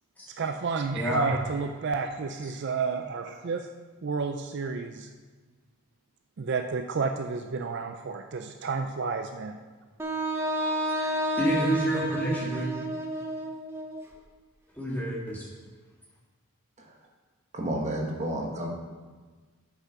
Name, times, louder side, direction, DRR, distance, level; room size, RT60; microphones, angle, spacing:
voice 1, 0.4-3.7 4.0-5.1 6.4-9.6, right 4 dB, 50° right, 6 dB, 0.4 m, -31 dB
voice 2, 0.9-1.3 11.0-11.1 11.4-12.7 14.8-15.5, right 1 dB, 5° left, -5 dB, 1.8 m, -28 dB
Wind instrument woodwind instrument, 10.0-14.0, right 1 dB, 10° right, 0.7 m, -30 dB
voice 3, 17.5-18.7, right 1 dB, 30° right, 1 dB, 1.1 m, -31 dB
8.5 x 5.9 x 5.7 m, 1.4 s
head